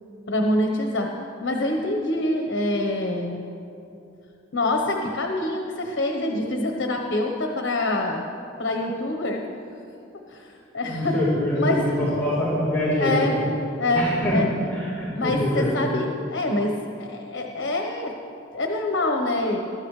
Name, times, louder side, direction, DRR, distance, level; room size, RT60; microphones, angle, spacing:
voice 1, 0.3-1.1 1.4-3.4 4.5-8.2 8.6-9.4 10.3-11.2 11.5-12.0 13.0-13.4 13.8-14.5 15.2-18.1 18.5-19.6, left 1 dB, 70° left, 2 dB, 1.1 m, -25 dB
voice 2, 10.9-13.3 13.9-14.4 14.7-15.7, left 1 dB, 10° left, -10 dB, 3.9 m, -24 dB
21.0 x 12.5 x 3.3 m, 2.7 s
head